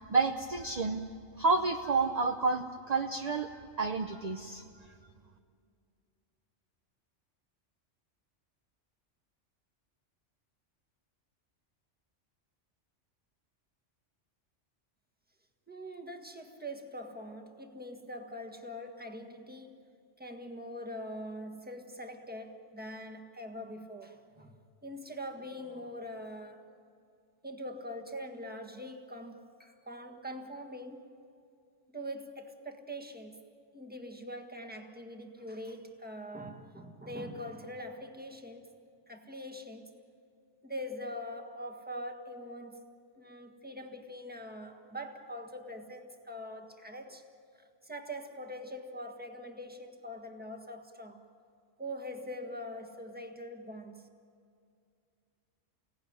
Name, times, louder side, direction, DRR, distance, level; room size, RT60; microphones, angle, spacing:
voice 1, 0.1-1.0 1.4-4.6, right 4 dB, 35° right, 0.9 m, -30 dB
voice 2, 15.7-19.9 20.2-24.5 24.8-26.6 27.4-31.1 31.9-33.4 33.7-38.7 39.1-39.9 40.6-42.8 43.2-47.2 47.6-51.3 51.8-54.1, equal, 10° right, 1.6 m, -43 dB
30.0 x 17.5 x 9.5 m
omnidirectional pair, 1.2 m